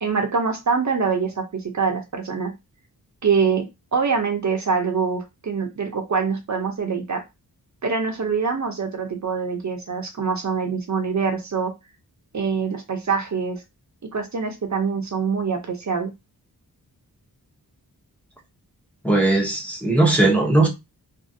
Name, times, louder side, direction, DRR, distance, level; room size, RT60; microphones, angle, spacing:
voice 1, 0.0-2.5 3.2-3.6 3.9-7.2 7.8-11.7 12.3-13.6 14.1-16.1, right 5 dB, 50° right, 0.7 m, -24 dB
voice 2, 19.0-20.7, right 2 dB, 5° left, 0.8 m, -18 dB
2.6 x 2.5 x 2.6 m
wide cardioid pair, 100°, 38 cm